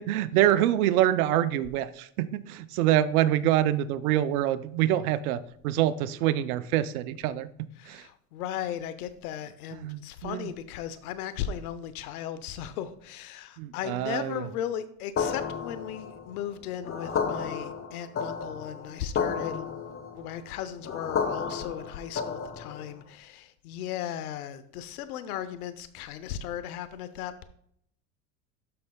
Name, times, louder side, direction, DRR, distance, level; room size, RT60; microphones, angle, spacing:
voice 1, 0.0-7.5 7.9-8.0 9.8-10.5 13.6-14.4, right 12 dB, 80° right, 15 dB, 0.6 m, -25 dB
voice 2, 7.8-27.5, left 10 dB, 90° left, 13 dB, 0.8 m, -36 dB
sound 1, 15.2-23.0, left 6 dB, 30° left, 0.9 m, -32 dB
12.5 x 5.3 x 2.3 m, 0.67 s
supercardioid pair, 95°, 43 cm